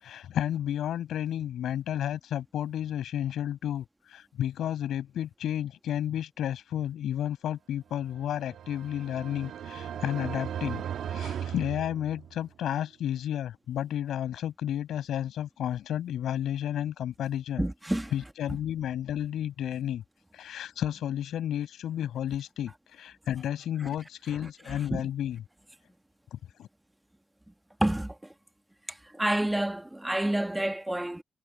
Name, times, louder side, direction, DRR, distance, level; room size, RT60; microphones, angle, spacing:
voice 1, 0.0-10.8 11.1-17.6 18.1-20.0 20.3-25.4 26.3-26.7, left 11 dB, 90° left, 5.4 m, -32 dB
sound 1, 8.1-12.5, right 9 dB, 75° right, 1.4 m, -37 dB
voice 2, 17.6-18.1 24.9-25.0 27.8-28.1 29.1-31.2, right 1 dB, 5° right, 1.4 m, -28 dB
cardioid pair, 135°, 0 cm